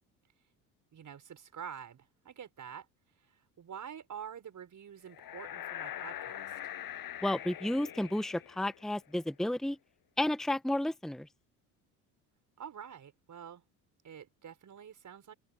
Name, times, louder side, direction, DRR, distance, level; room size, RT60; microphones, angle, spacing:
voice 1, 0.9-2.9 3.3-6.5 12.6-13.6 14.0-15.3, right 8 dB, 40° right, 6.1 m, -47 dB
sound 1, 5.1-8.9, left 11 dB, 50° left, 6.9 m, -43 dB
voice 2, 7.2-9.8 10.2-11.3, left 1 dB, ahead, 1.2 m, -32 dB
open air
hypercardioid pair, 75°, 44 cm